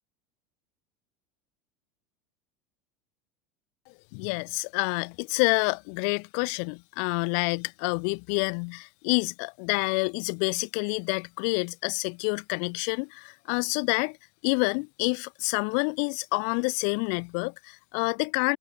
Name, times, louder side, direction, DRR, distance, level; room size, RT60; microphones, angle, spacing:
voice 1, 4.1-14.2 14.4-18.6, left 40 dB or more, 65° left, 2.7 m, -28 dB
hypercardioid pair, 85°, 9 cm